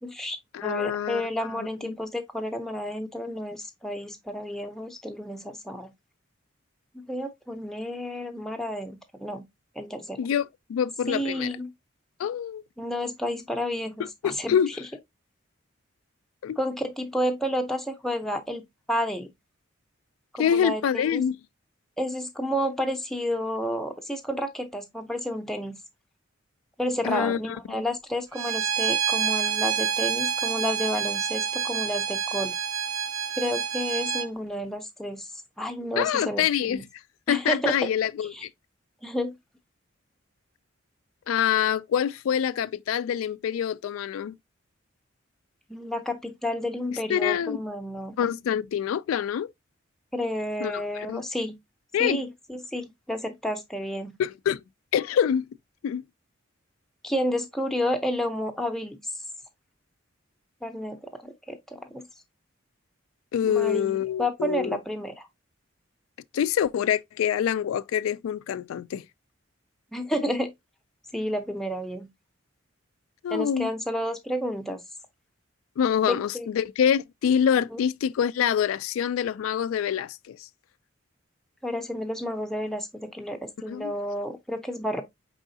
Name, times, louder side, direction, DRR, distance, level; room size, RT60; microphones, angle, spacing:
voice 1, 0.0-5.9 6.9-9.4 9.8-10.2 11.1-11.7 12.8-14.8 16.6-18.6 18.9-19.3 20.3-21.3 22.0-25.8 26.8-32.5 33.4-35.3 35.6-36.8 37.3-37.7 38.3-38.5 39.0-39.4 45.7-48.1 50.1-51.6 52.0-54.1 57.0-59.0 60.6-62.1 63.4-65.3 69.9-70.5 71.1-72.1 73.3-74.8 76.0-76.5 77.7-77.8 81.6-85.0, equal, ahead, 0.5 m, -31 dB
voice 2, 0.5-1.2 1.6-1.7 10.2-11.5 12.2-12.6 14.2-14.7 16.4-16.5 20.4-21.4 27.1-27.4 36.0-36.8 37.3-38.5 41.3-44.4 47.1-47.6 48.2-49.5 50.6-51.2 51.9-52.2 54.2-54.6 54.9-55.5 55.8-56.0 63.3-64.8 66.3-69.0 73.2-73.7 75.8-80.4 83.7-83.9, left 8 dB, 90° left, 0.3 m, -25 dB
Bowed string instrument, 28.3-34.3, right 7 dB, 80° right, 0.5 m, -28 dB
4.8 x 3.6 x 2.6 m
head